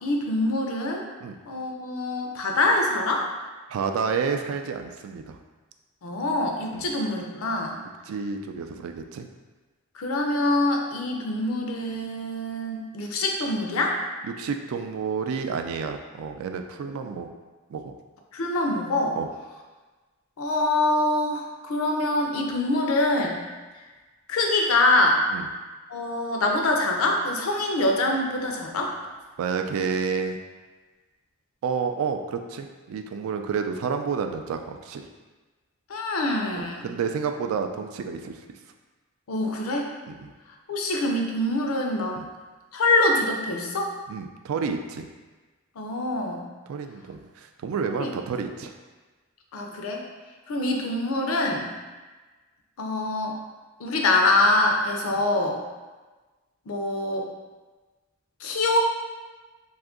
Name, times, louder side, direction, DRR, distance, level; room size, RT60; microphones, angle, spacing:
voice 1, 0.0-1.1 1.5-3.3 6.0-7.8 10.0-13.9 16.9-17.0 18.3-19.2 20.4-23.4 24.3-25.2 25.9-28.9 35.9-36.9 39.3-39.9 40.7-42.2 42.7-43.9 45.8-46.5 47.9-48.1 49.5-50.0 50.5-51.7 52.8-53.3 53.8-55.6 56.7-57.3 58.4-58.8, left 2 dB, 85° left, 1 dB, 0.5 m, -24 dB
voice 2, 3.7-5.4 6.7-6.9 8.1-9.3 14.4-17.3 17.7-17.9 19.1-19.3 25.3-25.5 29.4-30.4 31.6-35.1 36.6-38.4 40.1-40.3 42.2-42.3 44.1-45.1 46.7-48.7 55.1-55.2, right 5 dB, 80° right, 6 dB, 0.3 m, -30 dB
2.6 x 2.4 x 3.6 m, 1.3 s
head